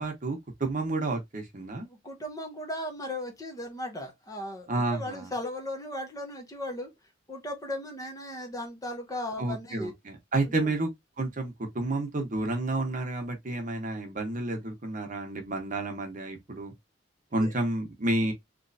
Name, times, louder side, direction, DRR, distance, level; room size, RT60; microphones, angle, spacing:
voice 1, 0.0-1.9 4.7-5.3 9.4-10.9 11.2-16.7 17.3-18.3, right 2 dB, 45° right, 1.0 m, -30 dB
voice 2, 1.9-6.9 7.3-9.9 10.5-10.7 17.4-17.5, left 1 dB, 20° left, 0.9 m, -36 dB
3.1 x 3.1 x 2.6 m
head